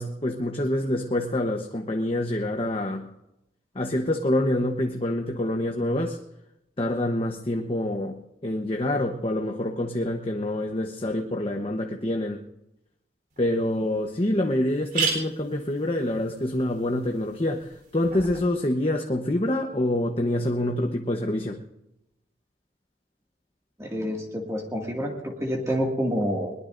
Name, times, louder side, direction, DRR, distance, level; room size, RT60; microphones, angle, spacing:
voice 1, 0.0-3.1 3.7-6.2 6.8-12.4 13.4-21.6, left 1 dB, 30° left, 3 dB, 1.1 m, -26 dB
sound 1, 13.4-13.5 13.9-14.0 14.2-14.3 14.7-18.4, right 5 dB, 55° right, 4.1 m, -34 dB
voice 2, 23.8-26.5, equal, 15° right, -1 dB, 2.2 m, -28 dB
22.0 x 21.0 x 2.7 m, 0.88 s
head